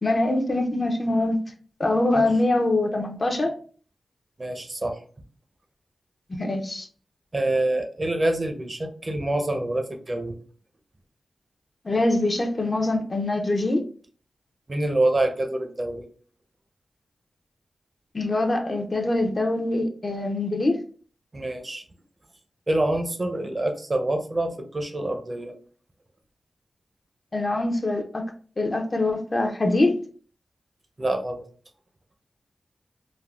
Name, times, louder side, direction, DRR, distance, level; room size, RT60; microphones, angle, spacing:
voice 1, 0.0-1.4 1.8-3.5 6.3-6.9 11.8-13.9 18.1-20.8 27.3-28.3 28.6-30.1, left 2 dB, 40° left, 0.5 m, -24 dB
voice 2, 4.4-5.0 7.3-10.4 14.7-16.1 21.3-21.8 22.7-25.5 31.0-31.4, right 1 dB, 35° right, 0.5 m, -26 dB
3.4 x 2.0 x 2.3 m
cardioid pair, 70°, 0 cm